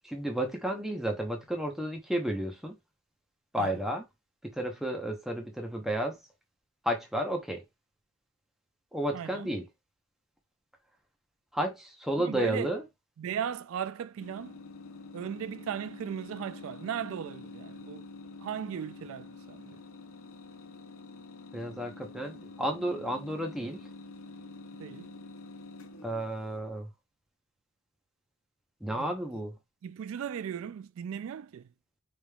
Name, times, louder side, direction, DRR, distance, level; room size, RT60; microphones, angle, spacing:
voice 1, 0.1-2.8 3.5-4.0 4.4-6.2 6.8-7.6 8.9-9.6 11.5-12.8 21.5-23.8 26.0-26.9 28.8-29.6, right 1 dB, ahead, 0.8 m, -32 dB
voice 2, 9.1-9.5 12.2-12.7 13.2-14.6 15.1-18.1 18.4-19.8 24.8-25.1 28.9-29.4 29.8-31.7, right 8 dB, 75° right, 0.3 m, -37 dB
sound 1, 14.2-26.5, left 3 dB, 70° left, 0.6 m, -47 dB
4.9 x 3.4 x 2.3 m
head